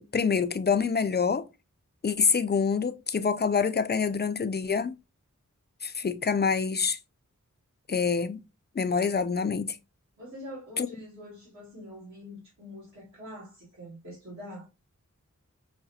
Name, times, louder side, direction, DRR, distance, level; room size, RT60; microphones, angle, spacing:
voice 1, 0.0-1.5 2.0-5.0 5.8-7.0 7.9-8.4 8.8-9.8 10.8-10.9, left 5 dB, 35° left, 0.4 m, -26 dB
voice 2, 10.2-14.7, equal, 60° right, 2.1 m, -44 dB
5.7 x 2.2 x 2.7 m
wide cardioid pair, 40°, 31 cm